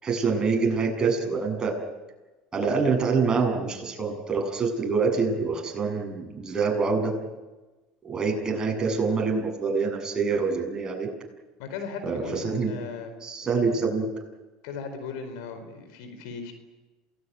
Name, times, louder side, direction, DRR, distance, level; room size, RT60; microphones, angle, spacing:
voice 1, 0.0-1.7 2.5-7.2 8.0-11.1 12.0-12.7 13.2-14.1, right 4 dB, 25° right, 2 dB, 7.2 m, -26 dB
voice 2, 11.6-13.2 13.4-13.5 14.6-16.5, left 5 dB, 75° left, 9 dB, 4.7 m, -37 dB
27.5 x 19.0 x 9.4 m, 1.2 s
supercardioid pair, 95°, 3 cm